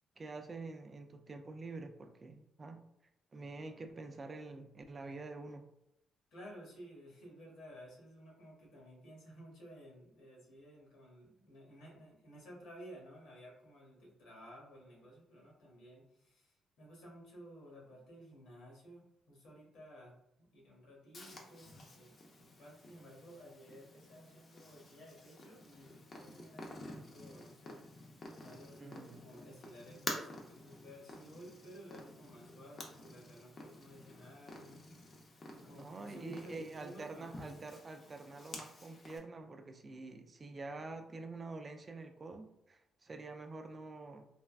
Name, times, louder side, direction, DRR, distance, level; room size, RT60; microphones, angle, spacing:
voice 1, 0.2-2.8 3.3-5.6 28.8-29.2 35.7-44.3, right 3 dB, 35° right, 6 dB, 0.3 m, -47 dB
voice 2, 6.3-20.1 20.5-28.0 28.4-35.1 35.5-37.6, equal, 85° left, -2 dB, 1.1 m, -55 dB
Purr, 21.1-39.2, left 2 dB, 45° left, 0.6 m, -50 dB
3.3 x 2.2 x 2.3 m, 0.82 s
cardioid pair, 90°, 0 cm